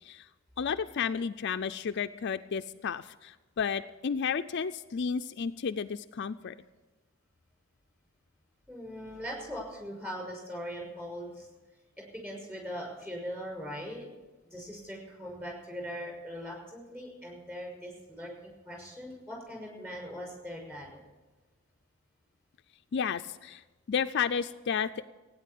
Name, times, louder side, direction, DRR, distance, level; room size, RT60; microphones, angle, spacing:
voice 1, 0.6-6.5 22.9-23.6 23.9-25.0, left 6 dB, 50° left, 9 dB, 0.4 m, -32 dB
voice 2, 8.7-11.5 12.1-14.1 14.5-21.0, equal, 10° right, 0 dB, 6.1 m, -40 dB
16.5 x 9.7 x 8.5 m, 1.2 s
head